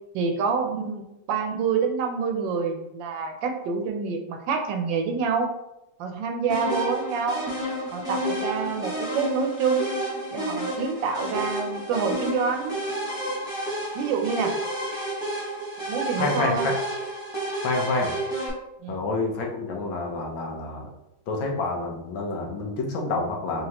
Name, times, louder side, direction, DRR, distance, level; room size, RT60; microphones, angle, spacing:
voice 1, 0.1-5.5 6.0-7.4 7.9-9.9 10.3-12.8 13.9-14.6 15.9-16.7 18.8-19.0, right 5 dB, 75° right, 4 dB, 1.3 m, -27 dB
sound 1, 6.5-18.5, right 1 dB, 5° right, 1.1 m, -30 dB
voice 2, 16.2-16.7 17.6-18.1 18.9-20.9 21.3-23.7, left 3 dB, 85° left, -1 dB, 1.6 m, -28 dB
4.1 x 3.5 x 2.9 m, 0.88 s
omnidirectional pair, 2.1 m